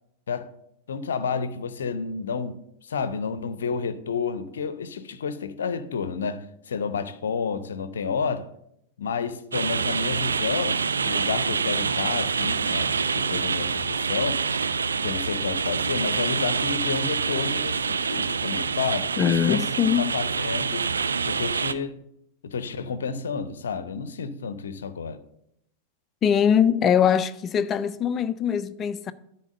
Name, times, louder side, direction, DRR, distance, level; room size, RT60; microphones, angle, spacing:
voice 1, 0.9-8.5 9.0-14.4 15.0-19.6 20.0-20.9 21.3-22.0 22.4-25.2, left 5 dB, 65° left, 0.7 m, -30 dB
sound 1, 9.5-21.7, right 5 dB, 75° right, 0.4 m, -26 dB
voice 2, 19.2-20.0 26.2-29.1, left 8 dB, 30° left, 0.5 m, -22 dB
9.9 x 4.4 x 7.4 m
figure-of-eight pair, 90°, 0 cm